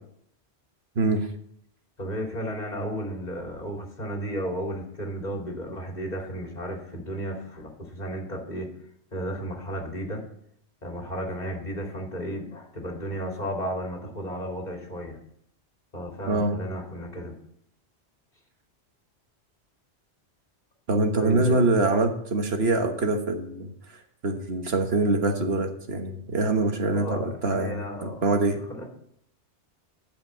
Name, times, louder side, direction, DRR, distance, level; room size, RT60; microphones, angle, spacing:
voice 1, 0.9-1.3 16.3-16.5 20.9-23.7 24.2-28.6, right 2 dB, 65° right, 5 dB, 1.5 m, -24 dB
voice 2, 2.0-8.7 9.1-10.2 10.8-15.2 15.9-17.4 21.1-21.7 26.9-28.9, equal, 40° left, 0 dB, 2.8 m, -34 dB
11.5 x 5.3 x 7.8 m, 0.71 s
omnidirectional pair, 1.1 m